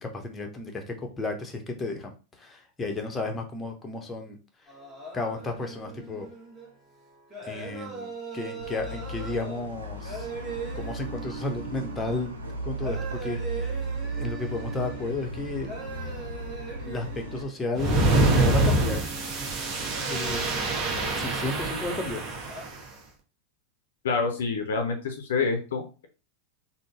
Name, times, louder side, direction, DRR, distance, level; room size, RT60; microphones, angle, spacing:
voice 1, 0.0-4.4 5.1-6.3 7.4-10.3 10.8-12.3 12.6-13.8 14.1-15.7 16.9-19.1 19.4-19.5 20.1-20.6 21.1-22.2, left 2 dB, 15° left, 3 dB, 0.8 m, -33 dB
Kaustuv Rag-Bhatiyar, 4.7-22.7, right 4 dB, 15° right, 1.2 m, -41 dB
sound 1, 8.6-17.4, right 2 dB, 75° right, 0.7 m, -36 dB
sound 2, 17.8-22.7, right 2 dB, 35° right, 1.0 m, -25 dB
voice 2, 24.0-26.1, left 4 dB, 60° left, 5 dB, 0.6 m, -27 dB
3.8 x 2.0 x 3.6 m, 0.33 s
figure-of-eight pair, 90°, 0 cm